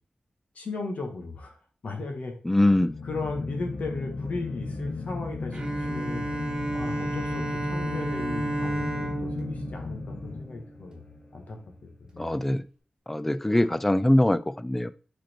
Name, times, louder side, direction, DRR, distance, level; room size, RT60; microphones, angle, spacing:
voice 1, 0.5-2.3 3.0-6.3 6.7-11.0 11.3-12.4, left 3 dB, 65° left, 3 dB, 1.6 m, -36 dB
voice 2, 2.4-2.9 12.2-12.7 13.1-14.9, left 1 dB, 10° left, 14 dB, 0.3 m, -23 dB
sound 1, 2.6-11.0, left 3 dB, 45° left, 1.2 m, -35 dB
Bowed string instrument, 5.5-11.0, right 1 dB, 25° right, 1.5 m, -32 dB
5.1 x 4.4 x 4.4 m, 0.38 s
wide cardioid pair, 145°, 3 cm